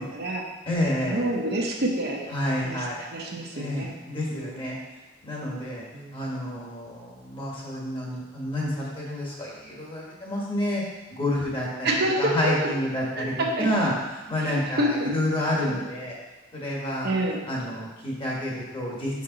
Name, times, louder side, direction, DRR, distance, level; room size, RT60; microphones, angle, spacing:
voice 1, 0.0-0.5 1.1-2.3 2.6-2.8 3.1-3.9 4.3-4.5 5.9-6.2 11.8-12.7 13.2-13.7 14.4-15.1 15.6-15.8 17.0-17.4, right 1 dB, 55° right, -1 dB, 1.0 m, -27 dB
voice 2, 0.6-1.2 2.3-3.0 3.5-4.8 5.2-5.8 6.1-10.8 11.1-11.9 12.2-13.9 14.3-16.2 16.5-17.1 17.5-19.2, left 1 dB, 30° left, -4 dB, 1.7 m, -29 dB
6.4 x 5.3 x 4.0 m, 1.1 s
head